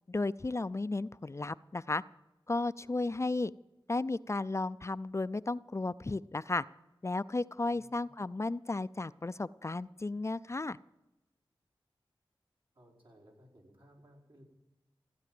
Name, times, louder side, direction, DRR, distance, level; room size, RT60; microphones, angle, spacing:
voice 1, 0.1-2.0 2.5-3.5 3.9-6.6 7.0-10.8, left 2 dB, 30° left, 16 dB, 0.4 m, -34 dB
voice 2, 7.7-8.2 12.7-14.4, equal, 70° right, -4 dB, 5.0 m, -60 dB
15.5 x 10.5 x 7.7 m, 0.98 s
wide cardioid pair, 50°, 9 cm